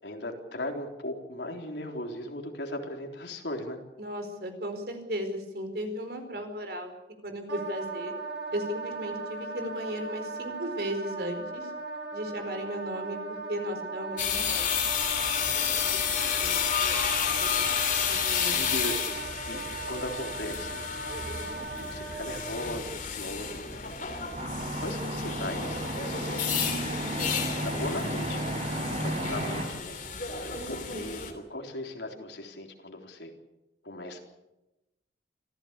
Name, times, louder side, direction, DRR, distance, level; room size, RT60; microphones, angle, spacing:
voice 1, 0.0-3.8 16.2-17.0 17.9-20.9 21.8-24.1 24.8-26.8 27.6-28.4 28.8-30.0 30.3-33.3 33.8-34.2, left 1 dB, 70° left, 3 dB, 3.8 m, -38 dB
voice 2, 4.0-6.9 7.2-8.1 8.5-11.7 12.1-14.8 18.1-18.6 30.5-31.1, equal, 55° right, 6 dB, 4.6 m, -36 dB
Wind instrument woodwind instrument, 7.5-22.8, right 3 dB, 90° right, 7.5 m, -38 dB
sound 1, 14.2-31.3, left 7 dB, 45° left, 3.0 m, -31 dB
sound 2, 24.3-29.6, right 1 dB, 35° right, 4.3 m, -33 dB
26.0 x 15.5 x 8.3 m, 0.95 s
head